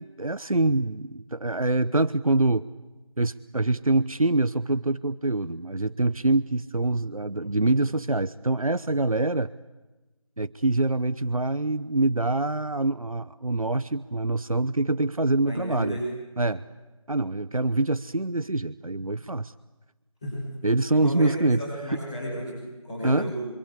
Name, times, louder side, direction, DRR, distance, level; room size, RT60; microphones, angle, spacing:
voice 1, 0.0-2.7 3.2-9.5 10.4-16.0 16.4-16.6 17.1-19.5 20.6-22.0 23.0-23.3, right 2 dB, 85° right, 15 dB, 0.9 m, -25 dB
voice 2, 15.5-16.0 20.2-20.5 20.9-23.5, equal, 10° left, -12 dB, 6.2 m, -33 dB
27.5 x 25.5 x 8.4 m, 1.1 s
figure-of-eight pair, 175°, 18 cm